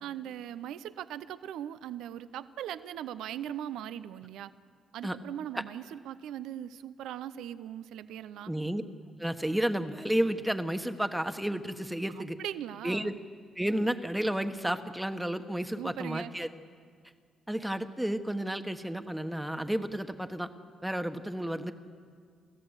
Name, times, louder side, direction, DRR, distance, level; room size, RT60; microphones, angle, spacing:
voice 1, 0.0-4.5 4.9-8.5 12.1-13.1 15.7-16.3, right 10 dB, 85° right, 14 dB, 0.6 m, -40 dB
voice 2, 8.5-8.8 9.2-12.4 12.8-13.1 13.6-16.5 17.5-20.5 20.8-21.7, right 1 dB, 5° right, 8 dB, 1.3 m, -31 dB
29.5 x 14.0 x 8.1 m, 2.1 s
cardioid pair, 90°, 0 cm